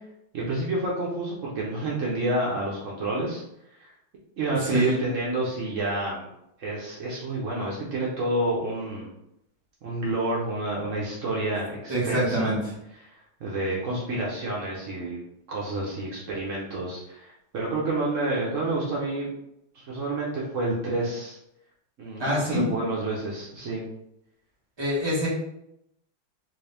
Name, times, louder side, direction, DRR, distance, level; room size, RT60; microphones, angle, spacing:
voice 1, 0.3-3.4 3.8-3.9 4.4-6.3 6.6-9.1 9.8-12.5 13.4-15.2 15.5-19.3 19.7-21.4 22.0-23.9, right 2 dB, 90° right, -4 dB, 0.6 m, -29 dB
voice 2, 4.6-5.0 11.9-12.6 22.2-22.7 24.8-25.3, right 1 dB, 15° right, -6 dB, 0.9 m, -25 dB
3.9 x 2.6 x 3.3 m, 0.80 s
omnidirectional pair, 2.4 m